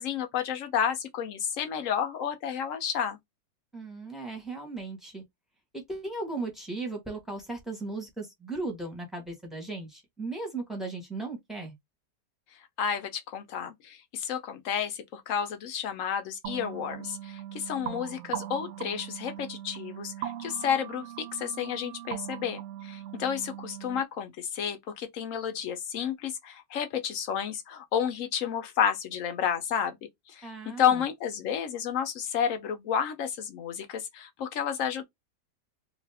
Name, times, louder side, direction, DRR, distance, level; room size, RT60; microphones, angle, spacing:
voice 1, 0.0-3.2 12.8-30.0 30.3-35.0, left 8 dB, 65° left, 0.8 m, -31 dB
voice 2, 3.7-5.2 5.7-11.7 30.4-31.0, right 3 dB, ahead, 0.8 m, -37 dB
sound 1, 16.4-24.0, right 12 dB, 65° right, 0.7 m, -40 dB
2.7 x 2.4 x 3.3 m
omnidirectional pair, 1.8 m